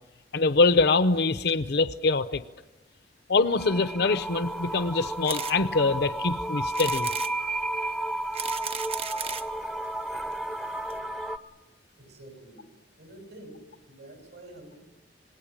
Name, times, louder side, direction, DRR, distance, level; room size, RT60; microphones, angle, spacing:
voice 1, 0.3-2.4 3.3-7.1, left 3 dB, 65° left, 12 dB, 0.8 m, -24 dB
sound 1, 3.6-11.4, right 1 dB, ahead, 0.7 m, -32 dB
sound 2, 5.2-5.6 6.0-6.1 6.7-7.3 8.1-9.5 10.3-10.4 10.6-10.7 10.9-11.0, right 7 dB, 35° right, 0.8 m, -35 dB
voice 2, 12.0-12.6 13.0-14.8, right 1 dB, 65° right, 4 dB, 7.0 m, -48 dB
27.0 x 19.5 x 8.7 m, 1.1 s
head